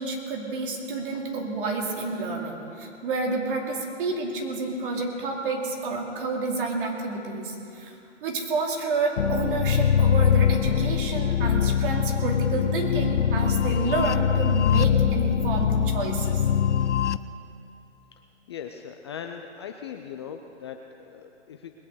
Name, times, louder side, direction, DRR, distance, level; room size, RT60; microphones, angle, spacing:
voice 1, 0.0-16.4, right 3 dB, 45° right, 1 dB, 2.6 m, -29 dB
sound 1, 9.2-17.2, left 9 dB, 75° left, 0.6 m, -23 dB
voice 2, 18.5-21.7, left 8 dB, 25° left, 4 dB, 0.4 m, -39 dB
20.5 x 8.2 x 6.7 m, 2.6 s
hypercardioid pair, 130°, 36 cm